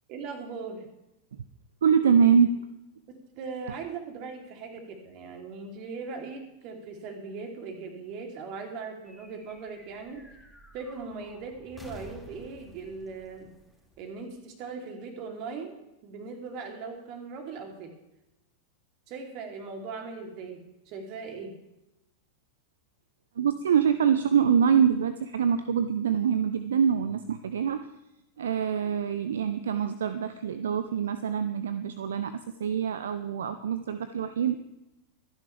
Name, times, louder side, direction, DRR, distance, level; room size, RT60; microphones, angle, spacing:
voice 1, 0.1-0.9 3.1-10.2 10.7-13.5 14.0-15.7 16.0-17.9 19.1-21.5, right 4 dB, 40° right, 3 dB, 3.1 m, -39 dB
voice 2, 1.8-2.6 23.4-27.9 28.4-34.6, right 7 dB, 65° right, 12 dB, 0.6 m, -25 dB
sound 1, 9.0-14.7, equal, 5° right, 2.7 m, -52 dB
25.0 x 10.5 x 3.4 m, 0.91 s
figure-of-eight pair, 90°, 0 cm